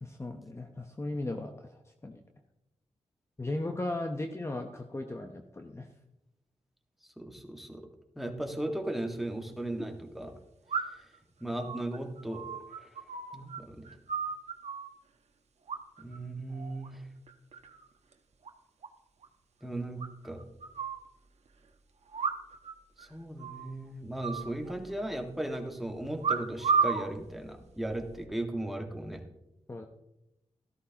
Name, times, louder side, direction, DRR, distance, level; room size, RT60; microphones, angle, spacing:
voice 1, 0.0-2.2 3.4-5.9 29.7-29.9, left 2 dB, 25° left, 4 dB, 0.9 m, -37 dB
voice 2, 7.2-7.9 8.2-10.3 11.4-12.5 12.8-13.0 13.3-13.9 16.0-17.0 19.6-20.4 23.0-29.2, right 1 dB, ahead, 3 dB, 1.7 m, -37 dB
sound 1, 8.9-9.0 10.7-11.2 11.6-13.6 13.9-14.9 15.7-16.2 16.5-16.9 17.3-17.8 18.1-18.2 18.4-18.5 18.8-18.9 19.2-19.3 20.0-21.0 22.1-22.7 23.0-23.1 23.4-23.7 24.2-25.1 26.2-27.1 27.8-28.2, right 5 dB, 75° right, 1.1 m, -33 dB
14.0 x 13.0 x 2.9 m, 0.91 s
cardioid pair, 70°, 11 cm